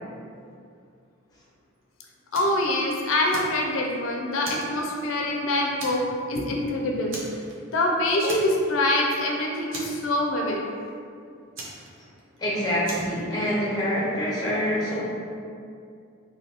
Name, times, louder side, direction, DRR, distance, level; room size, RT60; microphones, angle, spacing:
voice 1, 2.3-7.2 7.7-10.8 13.1-13.2, left 1 dB, 80° left, 0 dB, 0.4 m, -25 dB
Fire, 2.3-2.6 3.0-4.0 4.4-5.4 5.8-6.2 6.5-6.6 7.1-7.8 8.3-8.8 9.1-9.2 9.7-10.5 11.5-12.4 12.8-13.2, right 1 dB, 65° right, 0.7 m, -38 dB
voice 2, 12.4-15.0, equal, 20° left, -6 dB, 0.6 m, -26 dB
2.7 x 2.7 x 3.3 m, 2.4 s
head